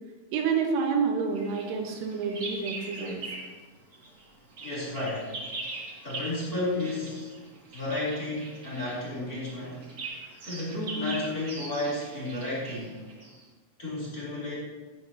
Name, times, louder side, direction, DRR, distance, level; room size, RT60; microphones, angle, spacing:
voice 1, 0.3-3.2, right 5 dB, 85° right, 2 dB, 3.8 m, -28 dB
Bird vocalization bird call bird song, 1.3-3.6 3.9-13.4, right 2 dB, 50° right, 1.2 m, -41 dB
voice 2, 4.6-5.3 6.0-7.3 7.7-9.8 10.5-13.0 13.8-14.5, left 2 dB, 20° left, -7 dB, 3.8 m, -32 dB
17.0 x 10.5 x 3.0 m, 1.4 s
omnidirectional pair, 5.5 m